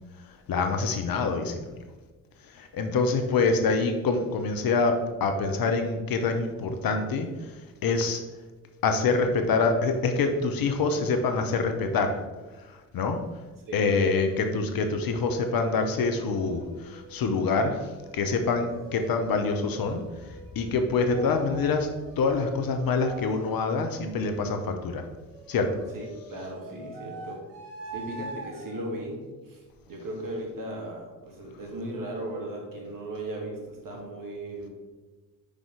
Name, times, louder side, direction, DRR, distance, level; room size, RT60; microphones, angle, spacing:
voice 1, 0.5-1.6 2.6-7.3 7.8-8.2 8.8-12.2 12.7-13.2 13.7-17.8 18.1-20.0 20.5-21.9 22.2-25.0 25.5-25.7, left 4 dB, 55° left, 6 dB, 1.0 m, -25 dB
sound 1, 14.1-14.5 15.3-17.1 17.9-20.8 21.1-24.4 25.3-28.9, right 2 dB, 75° right, 1.4 m, -45 dB
voice 2, 25.9-27.4 27.9-34.7, right 1 dB, 50° right, 0 dB, 2.2 m, -37 dB
5.4 x 5.1 x 4.8 m, 1.3 s
hypercardioid pair, 50°, 43 cm